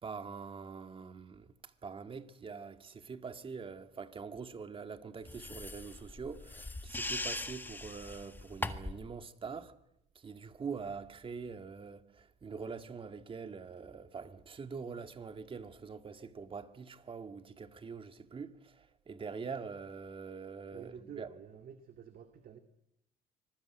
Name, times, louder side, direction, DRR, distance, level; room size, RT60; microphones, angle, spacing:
voice 1, 0.0-1.5 1.8-9.7 10.2-21.3, right 5 dB, 30° right, 2.0 m, -44 dB
sound 1, 5.3-9.1, left 2 dB, 10° left, 1.7 m, -40 dB
voice 2, 20.7-22.6, right 8 dB, 55° right, 2.2 m, -49 dB
25.0 x 20.0 x 9.2 m
cardioid pair, 110°, 17 cm